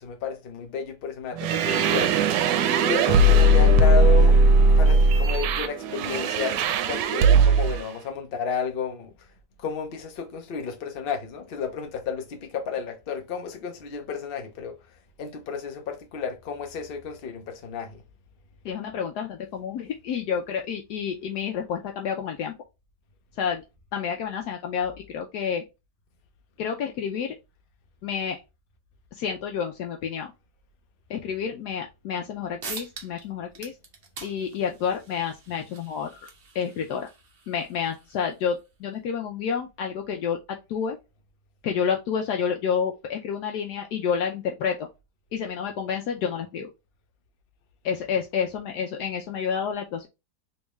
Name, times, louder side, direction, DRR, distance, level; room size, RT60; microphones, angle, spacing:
voice 1, 0.0-2.1 2.8-4.4 4.8-6.6 6.9-9.1 9.6-14.7 15.2-18.0, left 5 dB, 50° left, 0.7 m, -32 dB
sound 1, 1.4-7.8, right 2 dB, 85° right, 1.2 m, -18 dB
voice 2, 18.6-22.5 23.3-23.6 23.9-25.6 26.6-27.4 28.0-28.4 29.1-30.3 31.1-33.8 34.2-36.3 36.5-37.1 37.5-41.0 41.6-44.9 45.3-46.7 47.8-50.1, left 7 dB, 75° left, 1.1 m, -29 dB
sound 2, 32.2-32.3 32.6-33.3 33.5-38.7, right 4 dB, 45° right, 0.8 m, -44 dB
3.4 x 3.1 x 3.0 m
omnidirectional pair, 1.9 m